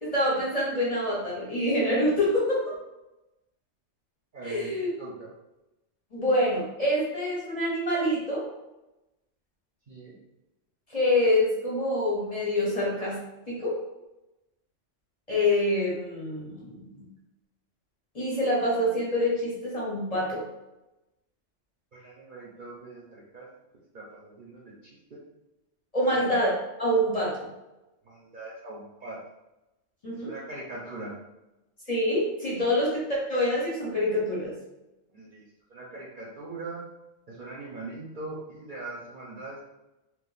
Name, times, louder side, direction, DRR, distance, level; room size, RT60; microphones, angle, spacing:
voice 1, 0.0-2.7 4.4-4.9 6.1-8.5 10.9-13.2 13.5-13.8 15.3-17.0 18.1-20.4 25.9-26.5 26.8-27.5 30.0-30.3 31.9-34.6, left 1 dB, 35° left, -6 dB, 0.7 m, -26 dB
voice 2, 4.3-4.7 5.0-5.3 9.9-10.2 21.9-23.5 23.9-24.7 25.1-25.2 26.0-26.2 28.1-29.2 30.1-31.1 35.1-35.5 35.7-36.8 37.3-39.6, right 2 dB, 50° right, -6 dB, 0.6 m, -41 dB
2.5 x 2.2 x 3.8 m, 0.98 s
omnidirectional pair, 1.3 m